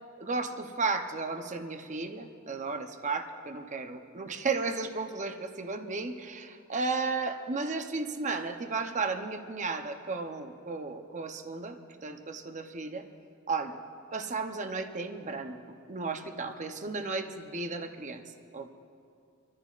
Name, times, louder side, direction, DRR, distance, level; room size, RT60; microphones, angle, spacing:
voice 1, 0.2-11.8 12.0-13.0 13.5-13.8 14.1-15.6 15.9-18.2 18.5-18.7, right 4 dB, 35° right, 6 dB, 0.8 m, -34 dB
26.5 x 14.0 x 2.5 m, 2.4 s
head